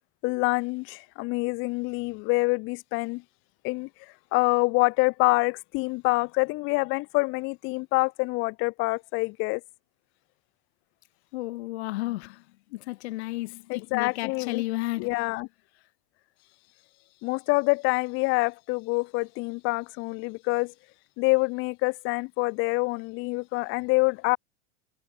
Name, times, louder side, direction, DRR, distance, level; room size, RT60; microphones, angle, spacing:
voice 1, 0.2-3.2 3.6-3.9 4.3-9.6 13.7-14.6 15.0-15.5 17.2-20.7 21.2-24.4, left 26 dB, 35° left, 1.0 m, -26 dB
voice 2, 11.3-12.4 12.7-15.1, left 19 dB, 75° left, 0.6 m, -32 dB
supercardioid pair, 160°, 34 cm